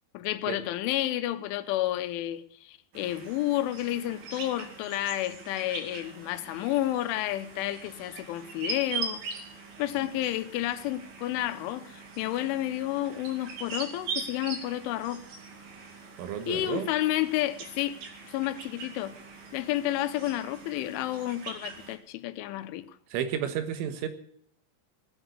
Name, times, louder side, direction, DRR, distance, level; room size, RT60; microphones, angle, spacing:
voice 1, 0.1-9.2 9.8-15.2 16.5-18.0 18.3-19.1 19.5-22.8, left 14 dB, 85° left, 3.3 m, -30 dB
sound 1, 2.9-22.0, right 5 dB, 55° right, 3.9 m, -42 dB
voice 2, 16.2-16.9 23.1-24.1, right 9 dB, 90° right, 3.9 m, -31 dB
19.0 x 8.1 x 8.1 m
omnidirectional pair, 5.5 m